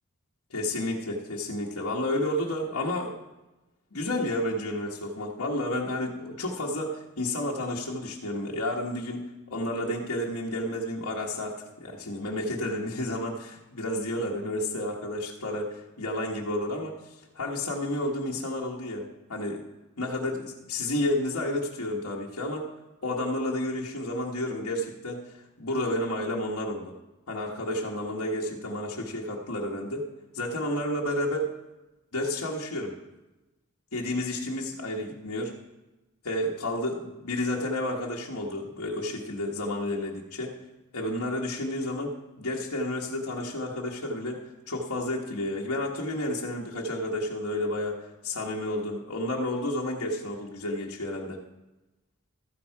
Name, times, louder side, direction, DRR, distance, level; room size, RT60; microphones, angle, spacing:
voice 1, 0.5-3.1 3.9-9.2 9.5-19.6 20.0-22.7 23.0-26.9 27.3-30.1 30.3-31.5 32.1-33.0 33.9-35.5 36.2-40.6 40.9-51.4, left 1 dB, 80° left, -3 dB, 1.4 m, -31 dB
14.0 x 8.9 x 4.7 m, 1.0 s
head